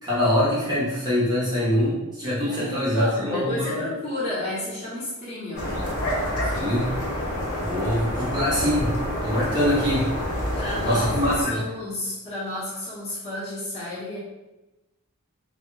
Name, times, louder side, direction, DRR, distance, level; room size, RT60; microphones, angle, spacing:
voice 1, 0.0-3.8 6.4-6.9 7.6-10.1 10.8-11.6, left 1 dB, 20° right, -8 dB, 0.6 m, -24 dB
voice 2, 2.4-5.7 10.6-14.2, left 1 dB, 30° left, -11 dB, 0.7 m, -32 dB
sound 1, 5.5-11.4, equal, 70° left, 0.7 m, -28 dB
2.1 x 2.1 x 3.0 m, 1.0 s
head